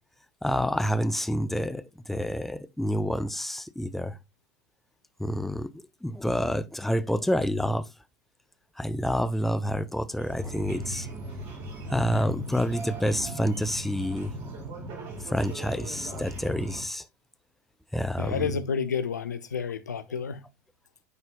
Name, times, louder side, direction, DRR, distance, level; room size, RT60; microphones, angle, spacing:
voice 1, 0.4-1.8 2.1-4.1 5.2-5.7 6.0-7.9 8.8-11.1 11.9-14.3 15.3-17.0 17.9-18.5, equal, ahead, 0.5 m, -28 dB
sound 1, 10.2-16.8, right 1 dB, 55° right, 3.1 m, -38 dB
voice 2, 18.2-20.4, left 6 dB, 85° left, 0.6 m, -30 dB
9.6 x 4.4 x 2.2 m
figure-of-eight pair, 80°, 9 cm